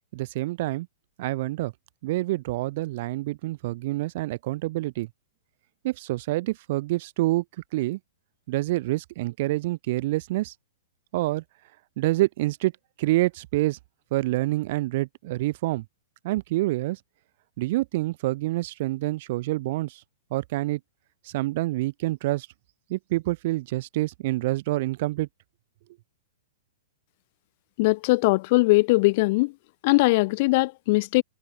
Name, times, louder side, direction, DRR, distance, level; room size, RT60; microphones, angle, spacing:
voice 1, 0.1-0.9 1.2-1.7 2.0-5.1 5.8-7.4 7.7-8.0 8.5-10.5 11.1-11.4 12.0-12.7 13.0-13.8 14.1-15.8 16.2-17.0 17.6-20.0 20.3-20.8 21.2-22.5 22.9-25.3, right 18 dB, 45° right, 4.2 m, -27 dB
voice 2, 27.8-29.5 29.8-31.2, left 23 dB, 40° left, 2.7 m, -20 dB
hypercardioid pair, 155°, 0 cm